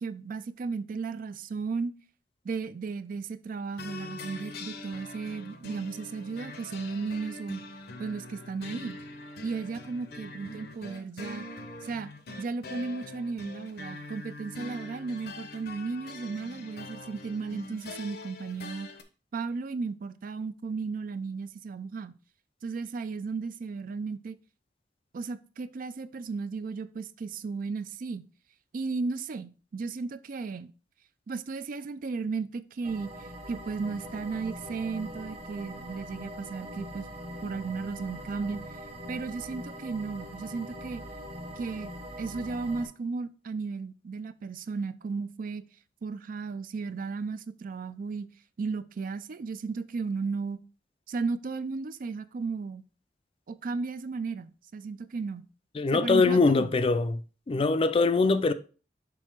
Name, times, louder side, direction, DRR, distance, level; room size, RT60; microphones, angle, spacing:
voice 1, 0.0-1.9 2.4-7.6 8.0-9.0 9.4-11.5 11.8-12.1 12.4-18.9 19.3-22.1 22.6-24.4 25.1-28.2 28.7-30.7 31.3-33.1 33.5-37.1 37.4-38.6 39.1-41.0 41.6-41.9 42.2-45.6 46.0-48.3 48.6-50.6 51.1-52.8 53.5-55.5 55.9-56.8, right 4 dB, 50° right, 0.4 m, -34 dB
sound 1, 3.8-19.0, left 2 dB, 60° left, 0.7 m, -43 dB
sound 2, 32.8-42.9, equal, 35° right, 1.1 m, -42 dB
voice 2, 55.8-57.2 57.5-58.5, left 3 dB, 30° left, 0.4 m, -23 dB
6.2 x 3.6 x 4.4 m
head